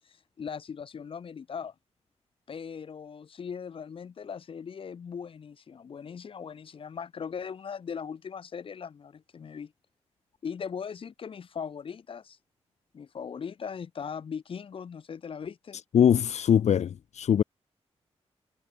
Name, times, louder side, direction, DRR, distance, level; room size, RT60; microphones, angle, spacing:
voice 1, 0.0-1.7 2.5-9.7 10.4-12.4 12.9-15.8, left 6 dB, 55° left, 2.8 m, -39 dB
voice 2, 15.9-17.4, left 9 dB, 85° left, 1.9 m, -22 dB
wide cardioid pair, 170°, 11 cm